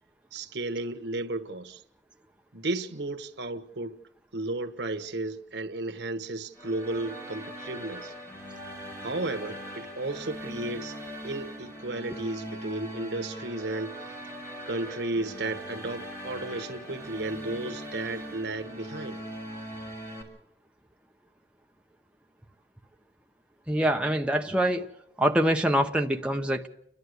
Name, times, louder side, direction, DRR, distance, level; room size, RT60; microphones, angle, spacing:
voice 1, 0.3-1.8 2.5-4.0 4.3-8.1 9.0-10.9 11.2-14.2 14.7-19.2, right 2 dB, 80° right, 1.4 m, -34 dB
sound 1, 6.5-20.2, equal, 15° left, 5.5 m, -40 dB
voice 2, 23.7-24.9 25.2-26.7, equal, 5° right, 1.0 m, -25 dB
29.5 x 11.5 x 8.1 m
head